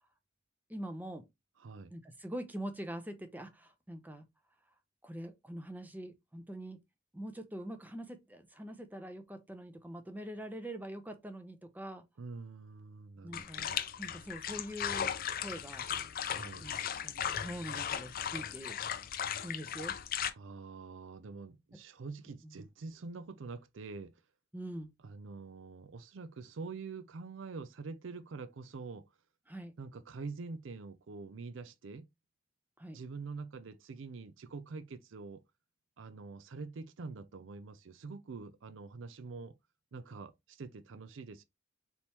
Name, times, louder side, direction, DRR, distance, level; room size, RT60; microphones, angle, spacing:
voice 1, 0.7-1.3 1.9-4.3 5.0-6.8 7.1-12.0 13.2-13.7 14.0-15.1 15.4-15.9 16.6-18.8 19.4-20.0 21.7-21.8 22.4-22.5 24.5-24.9 29.5-29.7 32.8-33.0, right 1 dB, 10° right, 0.6 m, -44 dB
voice 2, 1.6-1.9 12.2-13.9 16.3-16.7 20.4-24.2 25.0-29.1 29.8-32.1 32.9-35.4 36.0-39.6 39.9-41.4, right 4 dB, 70° right, 0.5 m, -45 dB
sound 1, 13.3-20.3, left 9 dB, 45° left, 0.5 m, -37 dB
4.2 x 3.5 x 2.9 m
head